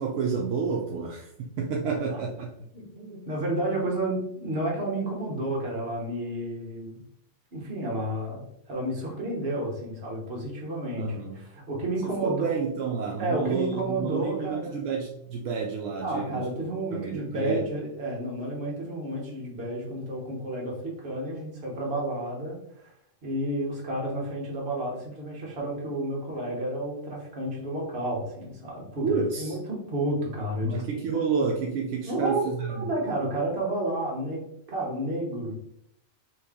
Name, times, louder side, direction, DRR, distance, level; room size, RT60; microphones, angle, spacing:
voice 1, 0.0-2.5 11.0-11.4 12.2-16.6 16.9-17.7 29.0-29.6 30.6-32.9, right 5 dB, 80° right, -1 dB, 0.9 m, -30 dB
voice 2, 2.7-7.0 7.5-12.5 13.2-14.7 16.0-22.6 22.8-22.9 23.2-30.8 32.0-32.4 32.7-34.4 34.7-35.6, right 1 dB, 55° right, -2 dB, 1.3 m, -31 dB
3.1 x 2.9 x 3.5 m, 0.74 s
omnidirectional pair, 1.3 m